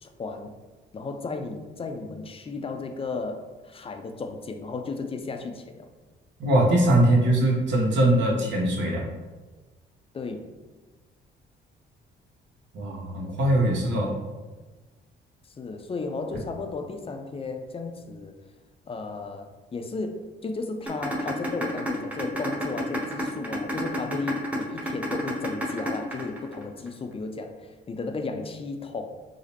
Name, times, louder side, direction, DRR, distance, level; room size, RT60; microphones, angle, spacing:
voice 1, 0.0-0.5 0.9-5.9 10.1-10.5 15.6-18.4 18.9-29.1, left 3 dB, 30° left, 6 dB, 0.4 m, -34 dB
voice 2, 6.4-9.1 12.7-14.1, right 1 dB, 65° right, -3 dB, 1.1 m, -21 dB
sound 1, 20.9-26.9, equal, 5° right, 0.8 m, -29 dB
4.9 x 2.0 x 2.9 m, 1.3 s
cardioid pair, 90°, 20 cm